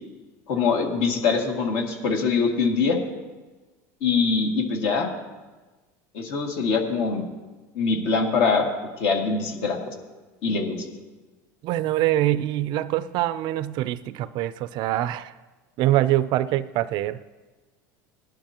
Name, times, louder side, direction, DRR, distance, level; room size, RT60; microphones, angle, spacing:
voice 1, 0.5-3.0 4.0-5.1 6.1-7.3 7.7-8.7 9.0-9.9 10.4-10.9, left 4 dB, 65° left, 2 dB, 2.2 m, -23 dB
voice 2, 11.6-15.3 15.8-17.2, right 14 dB, 50° right, 15 dB, 0.4 m, -24 dB
18.5 x 11.5 x 2.9 m, 1.2 s
supercardioid pair, 125°, 9 cm